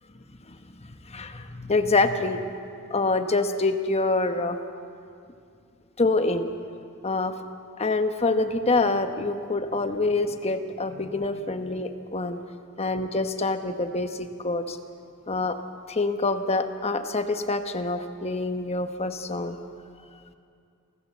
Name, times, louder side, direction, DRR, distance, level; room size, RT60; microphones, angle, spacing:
voice 1, 1.1-2.4 2.9-4.6 6.0-6.5 7.0-7.4 7.8-12.4 12.8-14.8 15.3-15.6 15.9-19.6, left 3 dB, 30° left, 7 dB, 1.1 m, -26 dB
28.0 x 14.0 x 7.4 m, 2.4 s
head